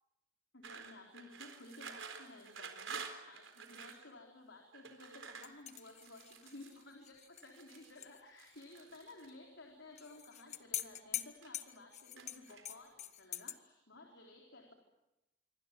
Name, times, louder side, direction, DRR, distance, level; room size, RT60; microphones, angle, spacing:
voice 1, 0.5-14.7, left 2 dB, 80° left, 2 dB, 4.1 m, -55 dB
sound 1, 0.6-4.0 4.7-6.8 7.3-8.0 8.4-9.3 10.2-10.9 11.2-11.7 12.2-12.9, right 5 dB, 85° right, 4.0 m, -50 dB
sound 2, 5.4-8.2 8.5-8.6 10.0-13.6, left 11 dB, 35° left, 1.1 m, -45 dB
27.0 x 24.5 x 7.5 m, 0.95 s
head